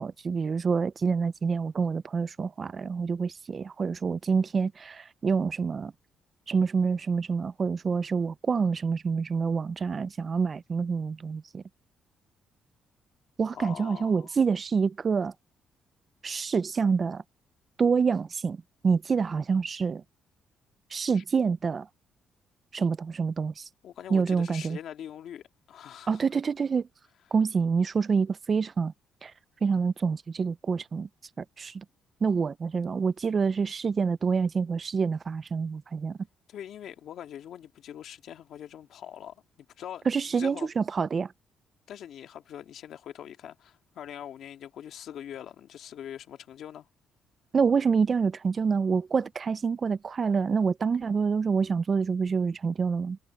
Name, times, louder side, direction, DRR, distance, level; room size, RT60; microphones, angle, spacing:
voice 1, 0.0-5.9 6.5-11.6 13.4-15.3 16.2-17.2 17.8-18.6 18.8-20.0 20.9-21.9 22.7-23.7 24.1-24.8 26.1-26.9 27.3-28.9 29.2-29.3 29.6-31.1 31.4-31.8 32.2-36.2 40.1-41.3 47.5-53.2, right 5 dB, 40° right, 0.5 m, -27 dB
voice 2, 13.5-14.3 21.1-21.2 23.8-26.2 36.5-40.1 40.4-40.7 41.9-46.9, left 10 dB, 70° left, 2.0 m, -43 dB
cardioid pair, 90°, 0 cm